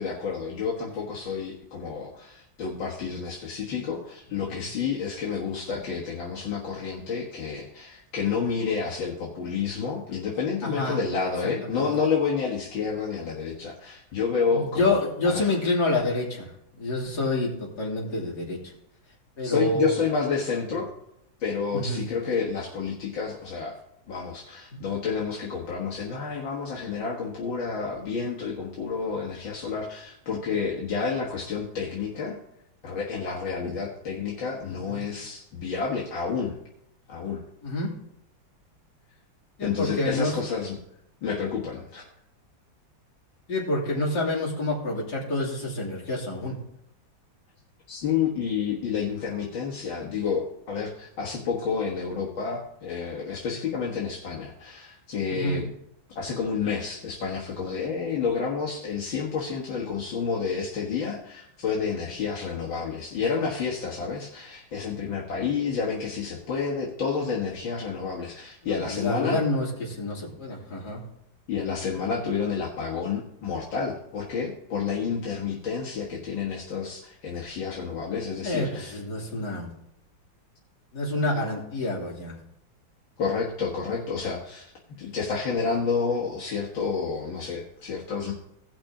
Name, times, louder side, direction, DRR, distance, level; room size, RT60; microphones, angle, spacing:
voice 1, 0.0-15.5 19.4-20.9 21.4-23.8 24.1-32.4 32.8-36.6 37.1-37.4 39.6-40.8 41.2-42.0 47.9-55.7 56.1-69.4 71.5-78.9 83.2-84.7 85.0-88.3, left 5 dB, 75° left, -4 dB, 2.3 m, -30 dB
voice 2, 10.6-11.0 11.6-11.8 14.5-16.5 16.8-18.6 19.4-20.0 21.7-22.0 34.8-35.0 37.6-37.9 39.6-40.3 43.5-46.6 55.3-55.6 68.6-71.0 78.4-79.7 80.9-82.4, left 2 dB, 55° left, -3 dB, 3.4 m, -28 dB
17.5 x 6.0 x 3.8 m, 0.76 s
omnidirectional pair, 2.1 m